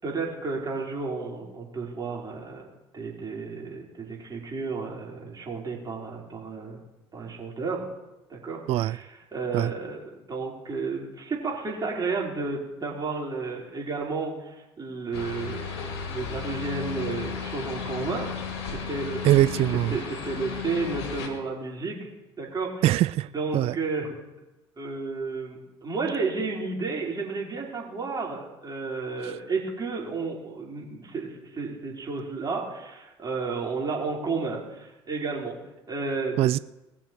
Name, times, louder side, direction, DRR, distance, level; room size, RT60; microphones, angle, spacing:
voice 1, 0.0-2.7 2.9-6.8 7.1-7.8 8.3-18.3 18.6-19.6 19.9-22.1 22.4-22.8 23.3-24.2 24.8-35.5 35.9-36.4, right 4 dB, 30° right, -2 dB, 4.9 m, -32 dB
sound 1, 15.1-21.3, left 5 dB, 75° left, 2.4 m, -34 dB
voice 2, 19.2-20.0 22.8-23.8 29.2-29.3 36.4-36.6, right 14 dB, 45° right, 17 dB, 0.4 m, -22 dB
20.0 x 6.9 x 4.7 m, 1.0 s
hypercardioid pair, 60°, 14 cm